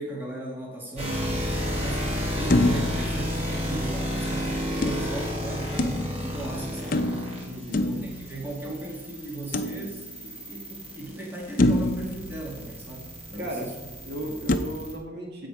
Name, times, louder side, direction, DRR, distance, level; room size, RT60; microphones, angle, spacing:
voice 1, 0.0-7.0 7.7-13.7 14.2-14.4, right 1 dB, 10° right, -3 dB, 2.1 m, -37 dB
sound 1, 1.0-14.9, equal, 35° right, 3.3 m, -32 dB
sound 2, 2.5-4.1 4.8-6.4 6.9-8.8 9.5-10.4 10.9-11.0 11.6-13.3 14.5-14.6, left 1 dB, 50° left, 0.6 m, -27 dB
voice 2, 7.5-7.9 13.4-13.7 14.1-15.5, right 1 dB, 60° right, 1 dB, 1.9 m, -35 dB
15.5 x 5.2 x 4.9 m, 1.1 s
head